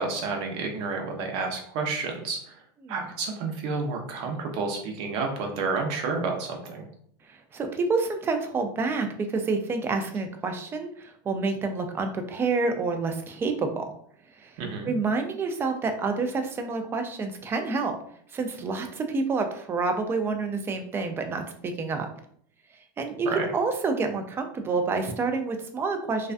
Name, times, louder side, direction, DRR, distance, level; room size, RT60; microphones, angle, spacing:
voice 1, 0.0-2.6 2.9-6.8 14.6-14.9 23.3-23.5, right 4 dB, 55° right, 2 dB, 0.7 m, -30 dB
voice 2, 7.3-13.9 14.4-14.5 14.9-18.0 18.3-22.1 23.0-26.3, right 4 dB, 20° right, 6 dB, 0.3 m, -28 dB
2.4 x 2.2 x 2.4 m, 0.63 s
supercardioid pair, 125°, 12 cm